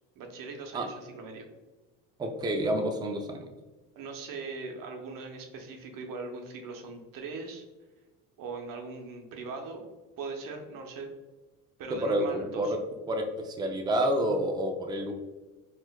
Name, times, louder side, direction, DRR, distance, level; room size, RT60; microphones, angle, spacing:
voice 1, 0.2-1.4 4.0-7.6 8.4-9.9 10.2-11.1 11.8-12.8, right 4 dB, 55° right, 4 dB, 0.8 m, -40 dB
voice 2, 2.2-3.5 11.9-12.8 13.1-15.1, right 1 dB, 10° right, 3 dB, 0.4 m, -29 dB
4.2 x 2.5 x 2.2 m, 1.2 s
supercardioid pair, 80°, 40 cm